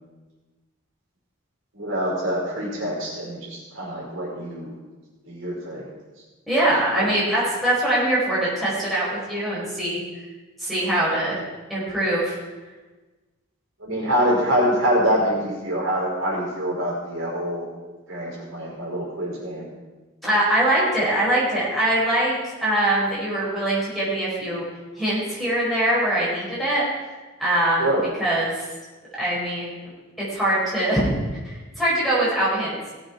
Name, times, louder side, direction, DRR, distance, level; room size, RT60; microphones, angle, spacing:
voice 1, 1.7-4.7 5.2-5.9 6.9-7.1 13.8-17.7 18.1-19.7 27.8-28.1, equal, 65° right, -4 dB, 4.9 m, -25 dB
voice 2, 6.5-10.0 10.6-11.4 11.7-12.3 20.2-22.4 22.6-24.6 25.0-26.8 27.4-27.9 28.2-28.5 29.2-29.8 30.3-31.1 31.4-33.0, right 1 dB, ahead, -8 dB, 4.9 m, -22 dB
18.0 x 8.0 x 4.6 m, 1.3 s
head